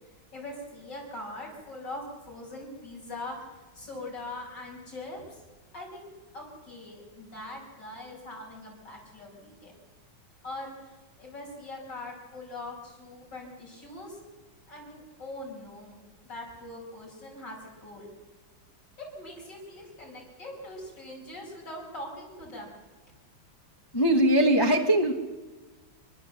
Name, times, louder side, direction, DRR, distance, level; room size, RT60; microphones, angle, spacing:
voice 1, 0.3-3.5 3.7-5.4 5.7-9.8 10.4-10.7 11.2-14.2 14.7-16.0 16.3-18.1 19.0-22.8, left 1 dB, 55° left, -2 dB, 6.9 m, -42 dB
voice 2, 23.9-25.1, right 1 dB, 15° left, 3 dB, 1.0 m, -21 dB
29.5 x 11.5 x 7.7 m, 1.3 s
omnidirectional pair, 2.2 m